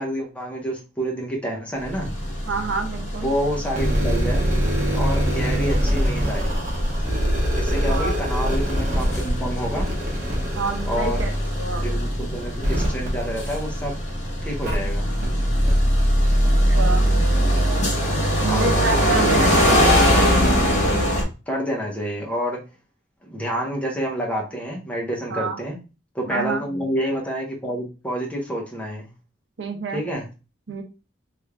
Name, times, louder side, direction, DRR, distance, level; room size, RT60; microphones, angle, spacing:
voice 1, 0.0-2.1 3.2-4.5 4.9-6.6 7.6-9.9 10.9-11.3 11.8-14.0 14.4-15.1 18.4-18.7 19.9-20.1 21.5-22.6 23.2-25.8 26.1-29.1 29.9-30.2, equal, 5° left, -2 dB, 0.9 m, -28 dB
sound 1, 1.8-21.2, equal, 40° left, 1.2 m, -22 dB
voice 2, 2.5-3.3 7.8-8.2 10.5-11.3 11.6-11.8 16.8-17.1 18.4-20.0 25.3-25.6 26.3-26.6 29.6-30.0 30.7-30.8, right 3 dB, 75° right, 5 dB, 0.7 m, -28 dB
sound 2, 3.7-14.1 14.6-14.8 15.2-15.3 15.7-15.8, equal, 45° right, 1.1 m, -24 dB
3.5 x 3.3 x 2.2 m, 0.31 s
head